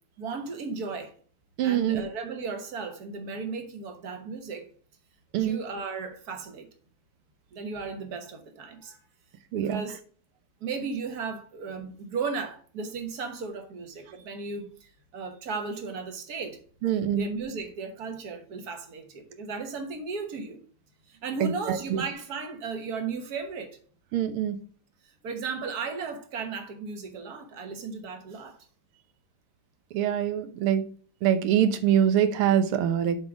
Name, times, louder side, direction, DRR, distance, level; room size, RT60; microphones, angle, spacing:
voice 1, 0.2-1.1 1.6-4.7 5.3-6.7 7.5-9.0 9.5-10.0 10.6-16.6 17.2-20.6 21.1-23.8 25.0-28.6, right 4 dB, 50° right, 1.6 m, -35 dB
voice 2, 1.6-2.0 5.3-5.6 9.5-9.8 16.8-17.2 21.4-22.0 24.1-24.6 29.9-30.8 31.2-33.2, right 9 dB, 85° right, 1.7 m, -24 dB
7.6 x 3.8 x 5.9 m
omnidirectional pair, 2.4 m